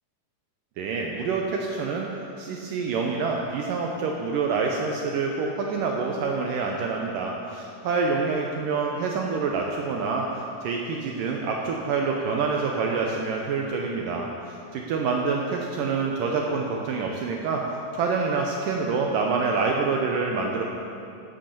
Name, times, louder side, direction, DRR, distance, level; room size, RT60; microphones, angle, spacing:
voice 1, 0.8-2.1 2.4-17.6 17.9-20.6, right 4 dB, 85° right, 0 dB, 1.9 m, -27 dB
12.0 x 7.8 x 7.0 m, 2.6 s
omnidirectional pair, 4.9 m